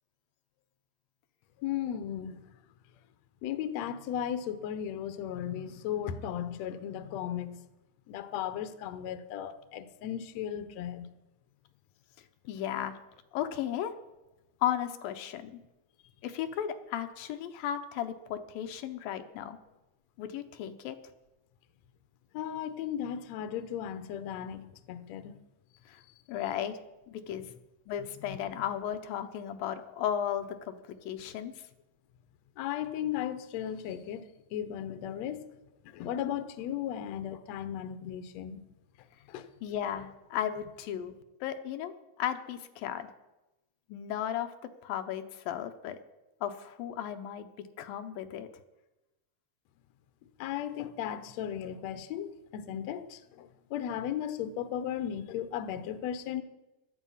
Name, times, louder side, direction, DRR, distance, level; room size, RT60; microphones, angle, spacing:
voice 1, 1.6-2.5 3.4-7.6 8.1-11.1 22.3-25.3 28.3-28.4 32.6-35.4 35.9-38.6 39.3-39.5 50.4-56.4, left 10 dB, 65° left, 1.9 m, -36 dB
voice 2, 12.4-13.0 13.3-13.9 14.6-15.6 16.2-19.6 20.2-21.0 25.9-26.0 26.3-26.8 27.1-27.5 27.9-31.5 39.6-41.1 41.4-43.1 43.9-44.5 44.8-46.0 46.4-48.5, left 10 dB, 90° left, 2.8 m, -35 dB
17.0 x 12.0 x 5.6 m
omnidirectional pair, 4.0 m